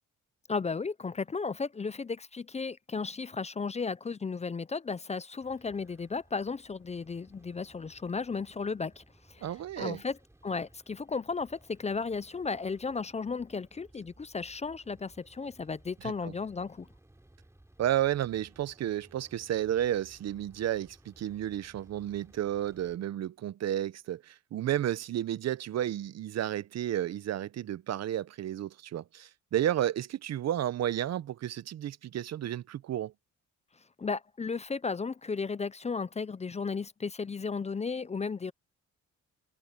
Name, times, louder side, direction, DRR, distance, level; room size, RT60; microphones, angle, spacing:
voice 1, 0.5-9.5 9.8-10.2 10.4-16.9 34.0-38.5, left 4 dB, 20° left, 0.6 m, -34 dB
sound 1, 5.4-23.0, right 1 dB, 10° right, 3.5 m, -60 dB
voice 2, 9.4-10.0 16.0-16.3 17.8-33.1, right 11 dB, 60° right, 0.8 m, -32 dB
cardioid pair, 90°, 30 cm